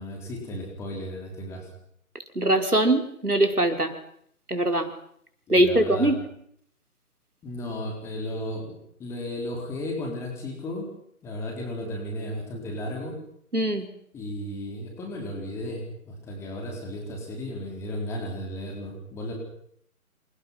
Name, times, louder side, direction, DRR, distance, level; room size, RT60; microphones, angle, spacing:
voice 1, 0.0-1.7 5.5-6.1 7.4-10.9 11.2-13.2 14.1-19.3, left 1 dB, 5° left, 1 dB, 4.6 m, -34 dB
voice 2, 2.4-3.9 4.5-4.9 5.5-6.2 13.5-13.9, right 1 dB, 90° right, 5 dB, 5.3 m, -22 dB
29.0 x 28.0 x 6.0 m, 0.70 s
figure-of-eight pair, 155°, 44 cm